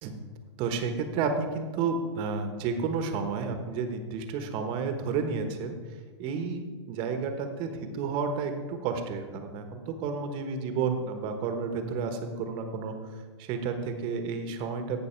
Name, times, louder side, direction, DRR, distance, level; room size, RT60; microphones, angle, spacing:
voice 1, 0.6-5.8 6.2-12.9 13.4-15.1, right 5 dB, 35° right, 6 dB, 1.2 m, -31 dB
16.0 x 6.2 x 4.5 m, 1.5 s
hypercardioid pair, 125°, 15 cm